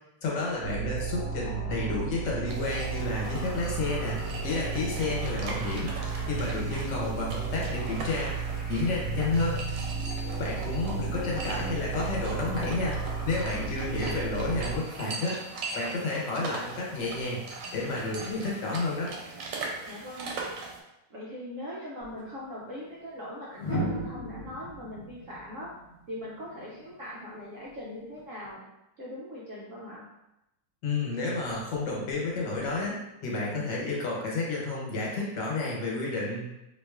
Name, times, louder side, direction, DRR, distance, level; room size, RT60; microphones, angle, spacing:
voice 1, 0.2-5.9 6.3-8.3 8.7-9.6 10.4-15.4 15.7-17.4 17.7-19.1 30.8-36.5, left 3 dB, 75° left, -3 dB, 1.5 m, -31 dB
sound 1, 0.6-14.8, right 4 dB, 45° right, 1.1 m, -33 dB
sound 2, 2.5-20.8, right 3 dB, 85° right, 1.3 m, -40 dB
voice 2, 5.9-6.4 10.3-10.6 14.0-14.1 19.8-20.3 21.1-25.7 26.1-28.6 29.0-30.1, left 1 dB, 65° right, -5 dB, 0.8 m, -41 dB
sound 3, 22.0-22.2 23.5-26.6 28.2-28.5, equal, 45° left, 1.1 m, -35 dB
3.9 x 3.0 x 2.3 m, 0.89 s
omnidirectional pair, 2.0 m